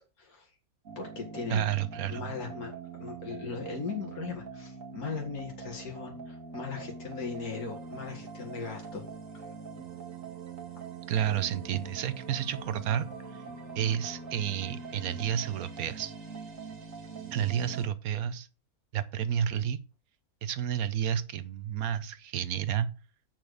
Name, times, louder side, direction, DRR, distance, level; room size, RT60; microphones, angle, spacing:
voice 1, 0.2-0.5 1.0-1.7 2.0-9.0 9.3-9.5, left 5 dB, 85° left, 2.3 m, -38 dB
sound 1, 0.8-17.9, right 5 dB, 60° right, 2.0 m, -43 dB
voice 2, 1.5-2.3 11.1-13.4 13.7-16.1 17.3-18.5 18.9-19.8 20.4-22.9, right 9 dB, 80° right, 1.1 m, -31 dB
7.0 x 5.9 x 6.3 m
omnidirectional pair, 1.5 m